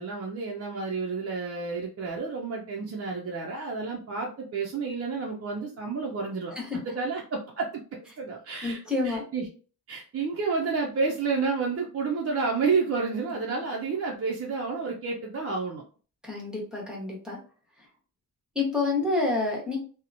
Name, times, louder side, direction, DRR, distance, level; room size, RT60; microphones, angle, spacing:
voice 1, 0.0-7.8 8.2-9.5 9.9-15.8, right 4 dB, 40° right, -1 dB, 0.4 m, -30 dB
voice 2, 8.6-9.2 16.2-17.4 18.5-19.8, left 3 dB, ahead, -3 dB, 0.9 m, -28 dB
2.8 x 2.0 x 2.5 m, 0.39 s
wide cardioid pair, 140°, 39 cm